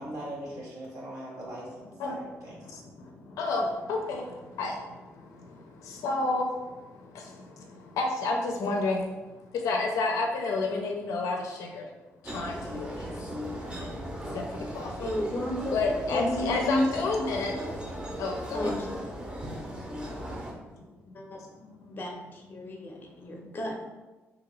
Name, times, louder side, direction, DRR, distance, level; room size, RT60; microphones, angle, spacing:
voice 1, 0.0-2.8, right 1 dB, 70° right, -6 dB, 0.8 m, -41 dB
voice 2, 2.7-9.0 9.5-11.9 12.2-13.1 13.8-14.0 14.3-14.9 15.7-17.6 18.2-18.7 20.0-20.4 20.7-20.8 21.8-22.0 23.5-23.6, left 3 dB, 85° left, 2 dB, 0.4 m, -30 dB
sound 1, 12.2-20.5, equal, 20° right, 0.6 m, -37 dB
voice 3, 15.0-15.8 16.1-16.6 18.5-19.0 21.1-21.5 22.0-23.8, left 1 dB, 40° left, 0 dB, 0.6 m, -34 dB
2.8 x 2.5 x 3.1 m, 1.2 s
cardioid pair, 75°, 5 cm